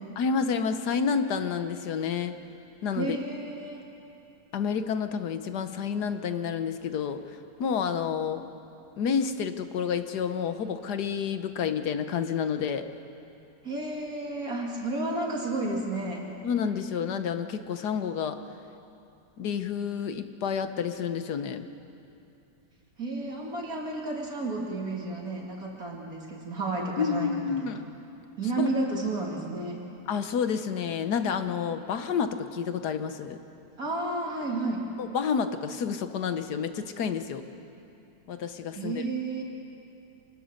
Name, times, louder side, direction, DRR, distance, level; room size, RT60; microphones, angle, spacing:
voice 1, 0.2-2.4 2.8-3.2 4.5-7.2 7.6-8.5 9.0-12.9 16.4-18.4 19.4-21.7 27.0-27.8 28.6-28.7 30.1-33.4 35.0-37.4 38.3-39.0, left 6 dB, 70° left, 9 dB, 1.5 m, -29 dB
voice 2, 3.0-3.8 13.6-16.2 23.0-27.6 28.4-29.8 33.8-34.8 38.7-39.4, right 2 dB, 55° right, -2 dB, 2.8 m, -31 dB
25.0 x 21.0 x 6.5 m, 2.7 s
omnidirectional pair, 1.8 m